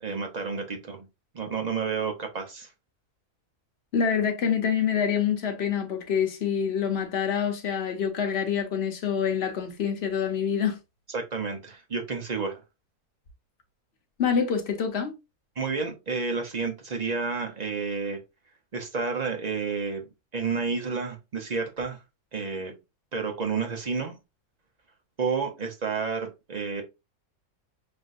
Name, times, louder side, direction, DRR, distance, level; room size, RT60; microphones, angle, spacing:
voice 1, 0.0-1.1 1.3-2.7 11.1-12.6 15.6-18.2 18.7-20.1 20.3-22.0 22.3-22.7 23.1-24.1 25.2-26.8, right 5 dB, 40° right, 0.6 m, -30 dB
voice 2, 3.9-10.8 14.2-15.1, left 7 dB, 50° left, 1.0 m, -26 dB
5.9 x 2.6 x 2.5 m
omnidirectional pair, 1.6 m